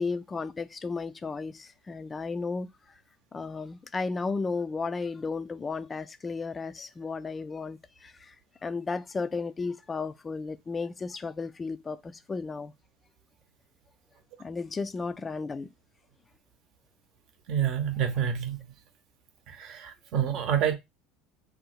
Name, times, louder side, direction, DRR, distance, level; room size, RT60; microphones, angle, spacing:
voice 1, 0.0-2.7 3.3-8.3 8.6-12.7 14.4-15.7, left 4 dB, 25° left, 0.4 m, -34 dB
voice 2, 17.5-18.6 19.5-20.7, right 9 dB, 60° right, 0.7 m, -28 dB
2.7 x 2.1 x 4.0 m
hypercardioid pair, 80°, 0 cm